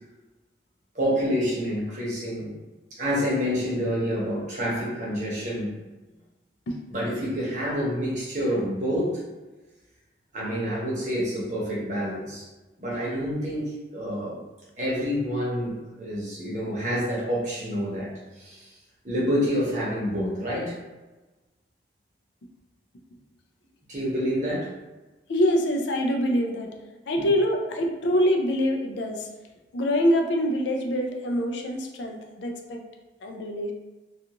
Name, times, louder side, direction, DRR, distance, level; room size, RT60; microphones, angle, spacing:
voice 1, 0.9-2.5 2.9-5.7 6.9-9.2 10.3-12.5 12.8-14.4 14.8-18.1 18.3-18.7 19.0-20.7 23.9-24.7 27.2-27.3, equal, 40° right, -6 dB, 0.9 m, -28 dB
voice 2, 25.3-26.8 27.1-29.3 29.7-32.8 33.2-33.7, equal, 75° left, 3 dB, 0.4 m, -25 dB
2.4 x 2.4 x 2.8 m, 1.2 s
head